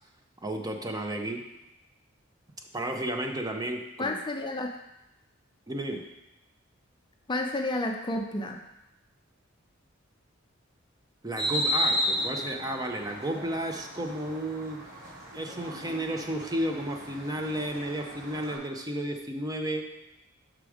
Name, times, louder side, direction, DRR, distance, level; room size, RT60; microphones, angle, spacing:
voice 1, 0.4-1.4 2.7-4.2 5.7-6.1 11.2-14.8 15.3-19.9, right 1 dB, 20° right, 3 dB, 0.6 m, -32 dB
voice 2, 4.0-4.8 7.3-8.6, left 2 dB, 25° left, 3 dB, 0.5 m, -31 dB
sound 1, 11.4-18.6, equal, 70° right, 2.7 m, -34 dB
6.1 x 4.7 x 4.9 m, 0.92 s
head